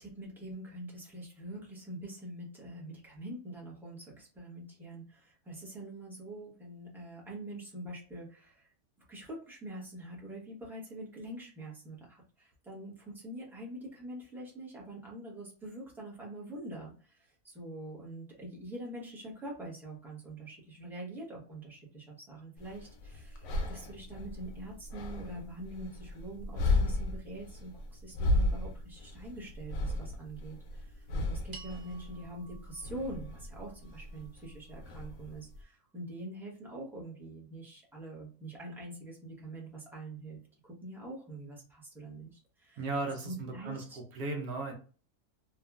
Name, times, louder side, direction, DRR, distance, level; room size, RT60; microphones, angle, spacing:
voice 1, 0.0-8.7 9.1-42.9 43.2-44.0, right 1 dB, ahead, -5 dB, 0.6 m, -45 dB
sound 1, 22.6-35.6, left 2 dB, 70° left, 1.0 m, -35 dB
sound 2, 31.5-36.0, right 5 dB, 55° right, 0.8 m, -56 dB
voice 2, 42.8-43.8 44.1-44.7, right 3 dB, 85° right, 2 dB, 1.2 m, -36 dB
2.9 x 2.3 x 2.3 m, 0.38 s
omnidirectional pair, 1.6 m